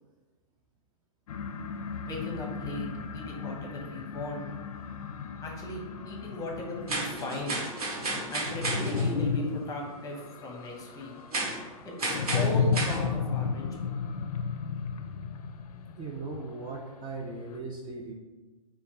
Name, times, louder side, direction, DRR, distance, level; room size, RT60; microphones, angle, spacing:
sound 1, 1.3-16.8, left 5 dB, 80° left, 0.4 m, -34 dB
voice 1, 2.1-2.9 3.1-4.4 5.4-7.6 8.3-11.1 11.8-13.6, left 1 dB, 20° left, 0 dB, 0.8 m, -38 dB
sound 2, 6.9-9.1 11.3-11.6 12.0-13.0, right 2 dB, 85° right, 1.2 m, -32 dB
voice 2, 16.0-18.1, right 3 dB, 25° right, -1 dB, 0.4 m, -38 dB
5.1 x 2.3 x 2.9 m, 1.2 s
hypercardioid pair, 120°, 19 cm